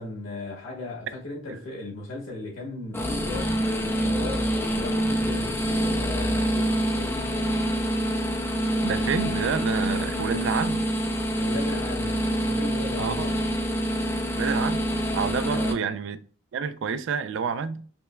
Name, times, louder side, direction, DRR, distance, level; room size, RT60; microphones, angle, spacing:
voice 1, 0.0-7.3 11.3-13.4 15.5-15.8, left 2 dB, 75° left, 1.4 m, -37 dB
sound 1, 2.9-15.7, equal, 10° left, 0.4 m, -26 dB
voice 2, 8.8-10.8 13.0-13.3 14.4-16.2 16.5-17.8, right 6 dB, 65° right, 0.3 m, -29 dB
5.1 x 2.2 x 2.2 m
head